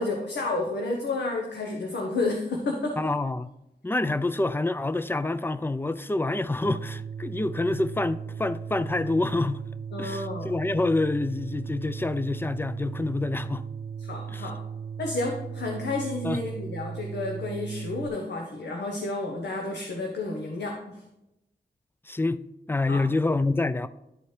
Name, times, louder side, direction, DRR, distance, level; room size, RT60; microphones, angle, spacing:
voice 1, 0.0-3.0 9.9-10.5 14.0-14.6 15.0-21.0 22.9-23.0, left 2 dB, 90° left, 0.8 m, -31 dB
voice 2, 3.0-3.5 3.8-9.6 10.0-13.7 14.3-14.5 16.2-16.4 22.1-23.9, left 2 dB, 15° left, 0.4 m, -27 dB
sound 1, 6.7-18.1, right 7 dB, 60° right, 0.5 m, -37 dB
11.0 x 4.3 x 3.2 m
cardioid pair, 50°, 17 cm